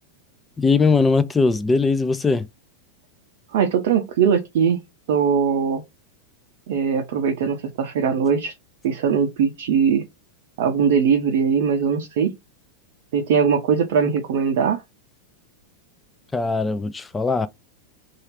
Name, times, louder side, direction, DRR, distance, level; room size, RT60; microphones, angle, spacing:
voice 1, 0.6-2.5 16.3-17.5, left 4 dB, 15° left, 0.3 m, -20 dB
voice 2, 3.5-4.8 5.1-5.8 6.7-8.5 8.8-10.0 10.6-12.3 13.1-14.8, right 7 dB, 55° right, 0.5 m, -20 dB
2.8 x 2.3 x 3.0 m
figure-of-eight pair, 90°, 0 cm